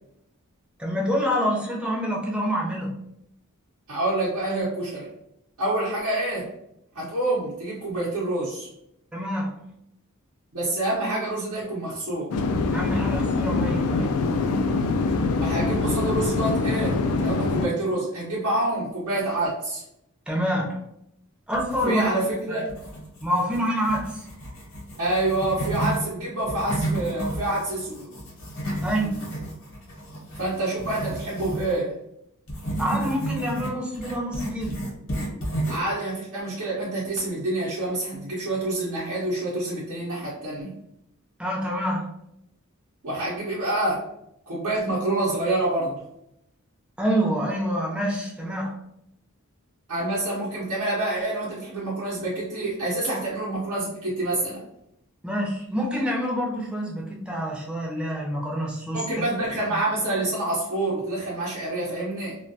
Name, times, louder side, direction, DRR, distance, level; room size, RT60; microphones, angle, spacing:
voice 1, 0.8-2.9 9.1-9.5 12.7-14.1 20.3-20.8 21.5-22.0 23.2-24.2 28.8-29.2 32.8-34.8 41.4-42.1 47.0-48.7 55.2-59.0 59.7-59.8, equal, 5° right, -3 dB, 0.5 m, -26 dB
voice 2, 3.9-5.1 5.6-6.5 6.9-8.7 10.5-12.4 15.4-19.8 21.8-22.7 25.0-28.1 30.4-31.9 35.7-40.7 43.0-44.1 44.5-46.0 49.9-54.6 58.9-62.4, right 2 dB, 80° right, -8 dB, 0.7 m, -27 dB
sound 1, 12.3-17.7, left 3 dB, 90° left, 0.3 m, -24 dB
sound 2, 21.5-22.3 22.7-26.0 26.4-31.8 32.5-35.9, right 1 dB, 65° left, 0.9 m, -32 dB
2.2 x 2.2 x 2.6 m, 0.78 s
head